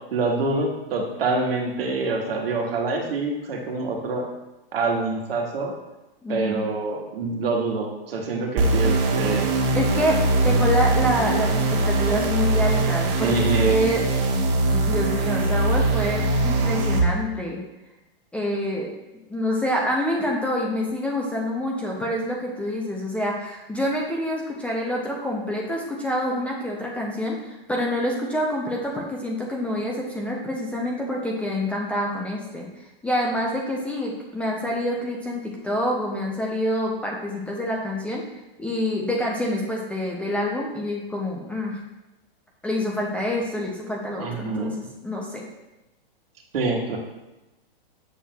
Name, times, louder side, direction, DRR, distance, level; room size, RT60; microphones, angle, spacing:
voice 1, 0.1-4.3 4.7-5.7 6.3-9.5 13.2-13.8 44.2-44.7 46.5-47.0, right 3 dB, 80° right, 1 dB, 1.4 m, -26 dB
voice 2, 6.2-6.6 9.7-14.0 14.3-17.6 18.3-18.9 19.3-32.7 33.0-38.2 38.6-41.8 42.6-44.7 45.0-45.4, left 1 dB, 5° left, -3 dB, 0.4 m, -27 dB
sound 1, 8.6-17.0, right 2 dB, 45° right, 1.3 m, -22 dB
7.5 x 6.4 x 2.3 m, 1.0 s
hypercardioid pair, 140°, 29 cm